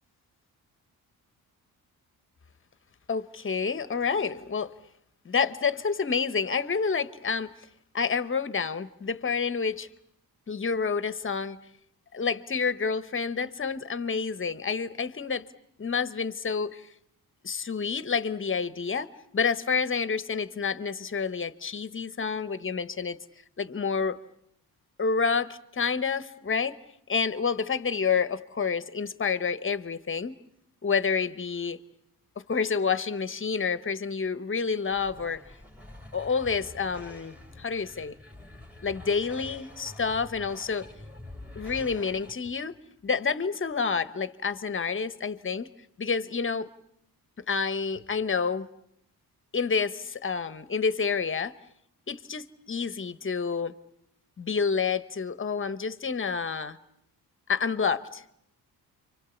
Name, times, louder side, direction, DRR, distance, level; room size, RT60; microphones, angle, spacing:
voice 1, 3.1-4.7 5.2-7.5 7.9-9.9 10.5-11.6 12.1-15.5 15.8-16.9 17.4-23.2 23.6-24.2 25.0-26.8 27.1-30.3 30.8-31.8 32.4-35.4 36.1-38.2 38.8-40.9 41.6-42.8 43.0-45.7 46.0-46.7 47.5-48.7 49.5-51.5 52.1-53.7 54.4-56.8 57.5-58.2, left 5 dB, 30° left, 1.1 m, -29 dB
sound 1, 34.9-42.3, left 1 dB, 5° right, 2.4 m, -46 dB
29.5 x 25.5 x 7.2 m
cardioid pair, 105°, 38 cm